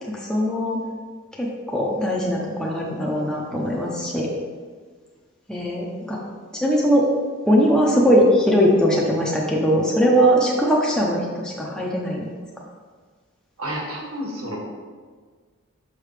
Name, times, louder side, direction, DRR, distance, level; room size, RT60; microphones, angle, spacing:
voice 1, 0.1-0.8 1.4-4.3 5.5-6.2 6.6-7.1 7.5-12.3, equal, 5° left, -4 dB, 0.6 m, -20 dB
voice 2, 13.6-14.6, equal, 75° right, -2 dB, 1.5 m, -30 dB
6.3 x 4.9 x 3.3 m, 1.5 s
head